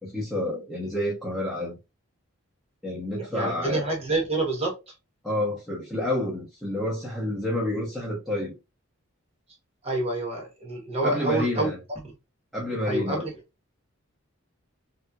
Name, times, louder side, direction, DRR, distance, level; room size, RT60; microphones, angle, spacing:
voice 1, 0.0-1.8 2.8-3.9 5.2-8.5 11.0-11.8 12.5-13.3, left 1 dB, ahead, 0.7 m, -29 dB
voice 2, 3.2-4.9 9.8-11.7 12.9-13.3, right 2 dB, 30° right, 1.1 m, -28 dB
3.3 x 2.8 x 2.3 m
head